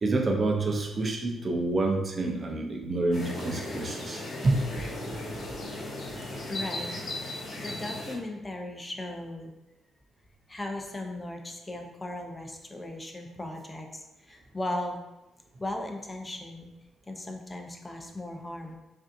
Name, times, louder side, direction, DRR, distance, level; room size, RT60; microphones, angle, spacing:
voice 1, 0.0-5.2, right 2 dB, 40° right, 2 dB, 0.6 m, -28 dB
sound 1, 3.1-8.2, left 2 dB, 65° left, 1.1 m, -36 dB
voice 2, 6.5-6.9 7.6-9.5 10.5-15.0 15.6-16.7 17.1-18.8, left 1 dB, 25° left, 3 dB, 0.6 m, -37 dB
4.9 x 2.7 x 2.6 m, 1.0 s
supercardioid pair, 65°, 0 cm